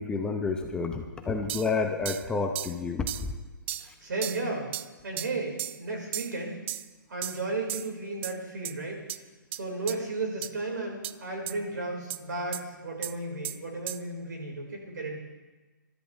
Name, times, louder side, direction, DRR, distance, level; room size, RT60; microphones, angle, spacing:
voice 1, 0.0-3.3 3.8-3.9, left 4 dB, 10° left, 3 dB, 0.8 m, -30 dB
sound 1, 1.5-1.7 2.1-2.3 2.6-2.8 3.1-3.3 3.7-3.9 4.2-4.4 4.7-4.9 5.2-5.3 5.6-5.8 6.1-6.3 6.7-6.9 7.2-7.4 7.7-7.9 8.2-8.3 8.7-8.8 9.1-9.2 9.5-9.6 9.9-10.0 10.4-10.5 11.0-11.1 11.5-11.6 12.1-12.2 12.5-12.6 13.0-13.1 13.4-13.6 13.9-14.0, right 13 dB, 35° right, 0.4 m, -35 dB
voice 2, 4.0-4.7 5.0-6.6 7.1-9.0 9.5-15.2, right 2 dB, 70° right, 0 dB, 5.1 m, -34 dB
21.0 x 13.0 x 3.5 m, 1.2 s
hypercardioid pair, 140°, 11 cm